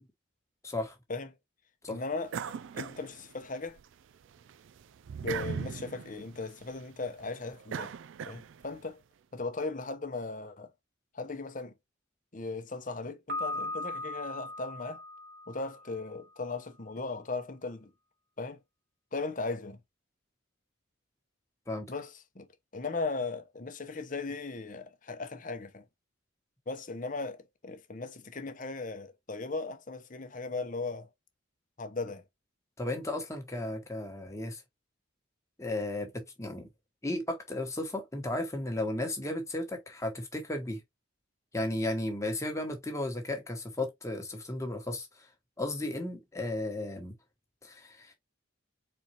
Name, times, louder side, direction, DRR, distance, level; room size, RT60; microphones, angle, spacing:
voice 1, 0.6-0.9 1.8-2.0 21.7-21.9 32.8-34.6 35.6-36.7 37.0-40.8 41.5-45.3 45.6-47.1 47.6-48.1, left 1 dB, 15° left, 1.2 m, -34 dB
voice 2, 1.9-2.3 2.7-3.8 5.2-7.9 8.3-9.0 9.3-10.7 11.1-11.7 12.3-15.0 15.5-17.9 18.4-18.6 19.1-19.8 21.9-22.5 22.7-25.8 26.7-31.1 31.8-32.2, left 3 dB, 40° left, 0.8 m, -37 dB
sound 1, 2.3-3.8 4.2-8.8, right 6 dB, 65° right, 0.3 m, -40 dB
Piano, 13.3-16.2, left 2 dB, 50° right, 1.0 m, -38 dB
4.3 x 4.0 x 2.9 m
head